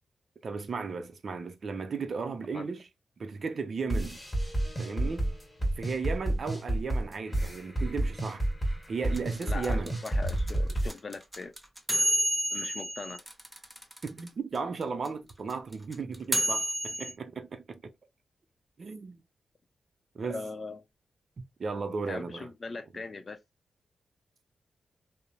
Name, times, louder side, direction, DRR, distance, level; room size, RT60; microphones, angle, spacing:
voice 1, 0.4-2.8 3.2-4.2 4.8-5.3 5.8-8.5 8.9-10.0 14.0-17.9 18.8-19.2 20.1-20.4 21.6-22.5, right 5 dB, 60° right, 0.5 m, -35 dB
sound 1, 3.9-10.9, right 1 dB, 10° left, 1.3 m, -30 dB
sound 2, 9.1-14.3 14.5-14.6 14.8-17.1, right 1 dB, 10° right, 0.7 m, -30 dB
voice 2, 9.4-11.5 12.5-13.2 20.3-20.8 22.0-23.4, left 3 dB, 45° left, 0.5 m, -40 dB
2.8 x 2.0 x 2.4 m
cardioid pair, 65°, 0 cm